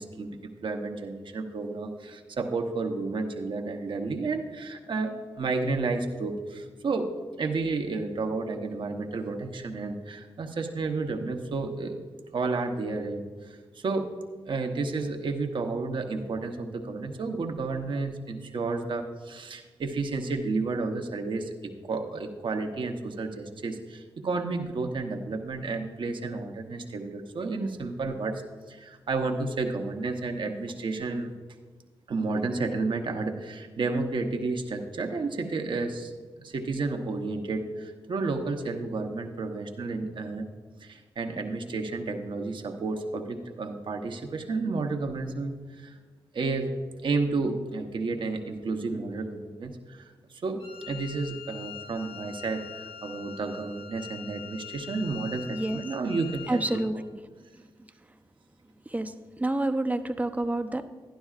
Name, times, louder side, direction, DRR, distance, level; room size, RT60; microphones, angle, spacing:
voice 1, 0.0-7.1 7.4-12.0 12.3-14.2 14.5-28.4 28.7-31.3 32.1-36.1 36.4-40.5 40.8-46.0 46.3-46.7 47.0-50.0 50.3-57.0, right 3 dB, 60° right, 4 dB, 1.0 m, -31 dB
Wind instrument woodwind instrument, 50.6-56.9, left 9 dB, 85° left, 0.8 m, -43 dB
voice 2, 55.5-55.8 56.5-56.9 57.6-57.9 58.9-60.8, right 2 dB, 15° right, 8 dB, 0.7 m, -29 dB
11.5 x 11.5 x 2.4 m, 1.4 s
cardioid pair, 60°, 9 cm